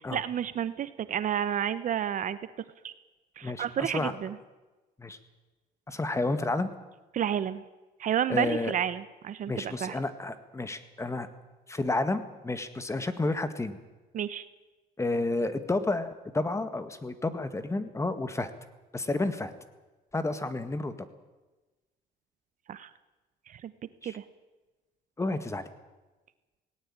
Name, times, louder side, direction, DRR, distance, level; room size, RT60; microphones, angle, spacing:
voice 1, 0.1-2.4 2.8-2.9 3.4-4.4 7.1-7.6 8.0-10.0 14.1-14.4 22.7-22.9 23.5-23.7 24.0-24.2, right 9 dB, 50° right, 14 dB, 0.9 m, -30 dB
voice 2, 3.4-4.1 5.0-5.2 5.9-6.7 8.3-8.7 9.5-11.3 11.7-13.8 15.0-18.5 18.9-19.5 20.1-20.9 24.0-24.2 25.2-25.6, left 2 dB, 15° left, 11 dB, 1.8 m, -30 dB
18.5 x 18.0 x 8.9 m, 1.2 s
cardioid pair, 110°, 17 cm